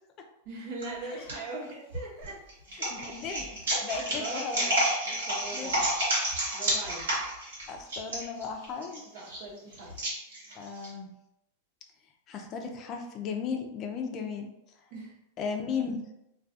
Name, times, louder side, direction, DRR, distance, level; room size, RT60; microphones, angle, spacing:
voice 1, 0.4-2.4 2.7-3.1 4.1-4.7 5.0-5.8 6.5-7.2 9.0-10.1 14.9-15.2, right 2 dB, 55° right, -3 dB, 0.9 m, -41 dB
sound 1, 0.8-1.3 1.9-10.9, right 1 dB, 85° right, 1.1 m, -30 dB
voice 2, 2.9-3.5 3.8-4.7 5.5-5.7 7.7-9.0 10.6-11.1 12.3-14.5 15.4-16.0, left 5 dB, 40° left, 4 dB, 0.4 m, -35 dB
2.3 x 2.3 x 2.6 m, 0.87 s
hypercardioid pair, 110°, 0 cm